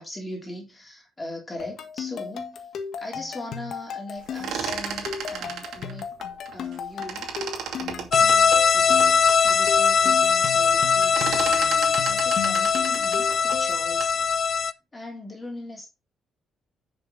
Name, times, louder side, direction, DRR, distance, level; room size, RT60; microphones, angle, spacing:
voice 1, 0.0-2.7 3.0-6.1 6.5-7.3 7.8-15.9, left 1 dB, 15° left, 3.4 m, -40 dB
sound 1, 1.6-13.9, left 7 dB, 60° left, 1.4 m, -36 dB
sound 2, 4.2-6.8 7.0-9.2 9.7-9.8 10.0-10.4 10.7-14.2, right 7 dB, 70° right, 2.4 m, -34 dB
sound 3, 8.1-14.7, left 6 dB, 40° left, 0.5 m, -20 dB
10.5 x 6.2 x 4.0 m
cardioid pair, 145°, 0 cm